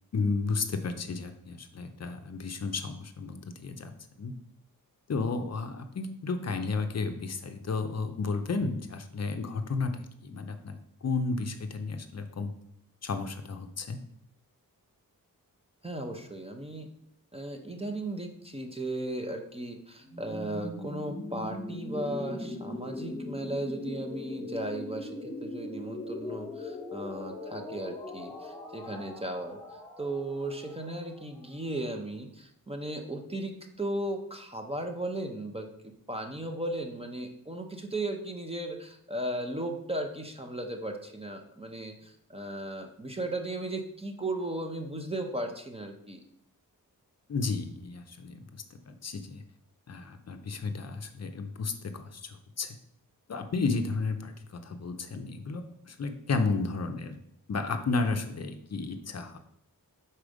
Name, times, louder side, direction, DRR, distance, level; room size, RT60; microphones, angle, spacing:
voice 1, 0.1-3.9 4.2-4.3 5.1-12.5 13.0-14.0 47.3-49.4 49.9-52.8 53.3-57.2 57.5-59.4, left 4 dB, 45° left, 7 dB, 0.5 m, -33 dB
voice 2, 15.8-16.9 17.3-29.6 30.0-35.7 36.1-46.2, right 1 dB, 15° right, 4 dB, 0.5 m, -36 dB
sound 1, 20.0-31.8, left 1 dB, 5° left, 0.9 m, -40 dB
5.0 x 4.3 x 4.9 m, 0.72 s
wide cardioid pair, 170°, 35 cm